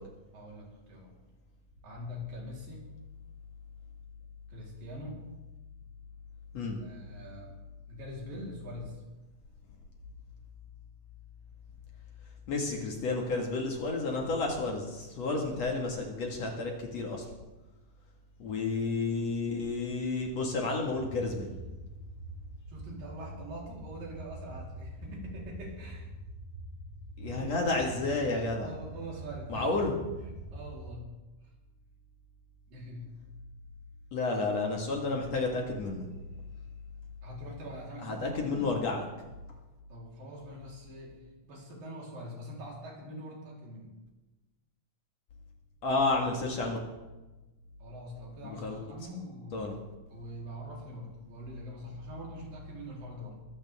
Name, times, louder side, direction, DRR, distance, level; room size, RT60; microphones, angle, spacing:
voice 1, 0.3-1.1 1.8-2.9 4.5-5.2 6.8-7.6 7.9-9.0 18.9-19.2 22.7-26.1 27.3-27.7 28.6-29.7 30.5-31.1 32.7-33.1 37.2-38.7 39.9-43.9 47.8-49.6 50.1-53.4, equal, 70° right, -3 dB, 5.7 m, -44 dB
voice 2, 12.5-17.2 18.4-21.5 27.2-28.7 29.5-29.9 34.1-36.1 38.0-39.0 45.8-46.8 48.4-48.8 49.5-49.7, left 3 dB, 50° left, 0 dB, 2.7 m, -31 dB
sound 1, 20.9-30.9, right 1 dB, 30° right, 2.0 m, -45 dB
22.0 x 15.0 x 3.6 m, 1.1 s
omnidirectional pair, 4.1 m